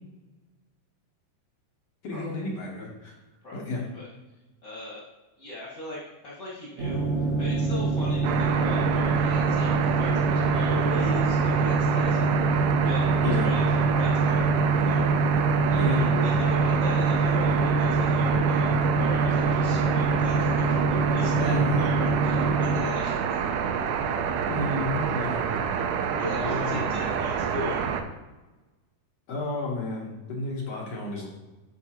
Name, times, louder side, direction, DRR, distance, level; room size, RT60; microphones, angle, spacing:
voice 1, 2.0-3.1 3.5-3.8 13.2-13.5 15.8-16.0 21.4-21.9 24.5-25.4 26.3-27.3 29.3-31.3, left 2 dB, 65° left, -3 dB, 1.6 m, -31 dB
voice 2, 3.4-4.1 4.6-5.0 5.4-15.1 15.7-24.2 26.2-27.8, left 2 dB, 90° left, -7 dB, 0.7 m, -39 dB
sound 1, 6.8-22.8, right 3 dB, 50° right, 2.2 m, -25 dB
sound 2, 8.2-28.0, right 7 dB, 80° right, 2.3 m, -28 dB
13.0 x 4.7 x 3.0 m, 1.1 s
omnidirectional pair, 4.8 m